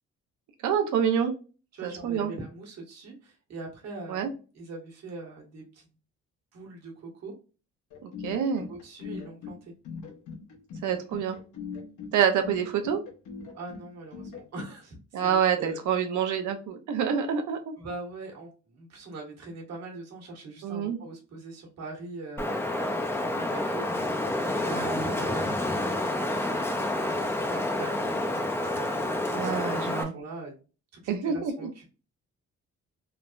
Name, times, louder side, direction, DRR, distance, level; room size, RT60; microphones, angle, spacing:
voice 1, 0.6-1.3 1.8-2.3 4.1-4.3 8.0-8.7 10.8-11.4 12.1-13.0 15.1-17.7 20.6-21.0 24.6-25.6 29.3-30.1 31.1-31.5, right 7 dB, 75° right, 5 dB, 0.8 m, -27 dB
voice 2, 1.7-5.9 6.5-7.3 8.7-9.7 13.5-15.8 17.8-24.9 26.8-29.5 29.9-30.5 30.9-31.9, right 3 dB, 60° right, 0 dB, 1.3 m, -42 dB
sound 1, 7.9-14.7, left 5 dB, 80° left, 1.0 m, -41 dB
Wind, 22.4-30.0, left 1 dB, 10° left, 0.4 m, -29 dB
3.4 x 2.1 x 2.4 m, 0.34 s
cardioid pair, 90°, 30 cm